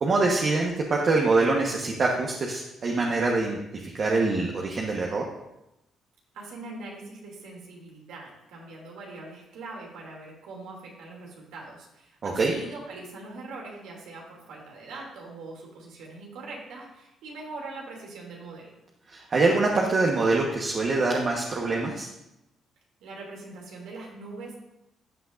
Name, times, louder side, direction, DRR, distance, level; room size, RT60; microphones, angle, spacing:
voice 1, 0.0-5.2 12.2-12.5 19.1-22.1, right 3 dB, 45° right, -1 dB, 1.2 m, -24 dB
voice 2, 6.3-18.7 23.0-24.5, right 3 dB, 90° right, -2 dB, 2.7 m, -42 dB
14.0 x 7.9 x 2.6 m, 0.89 s
cardioid pair, 90°, 0 cm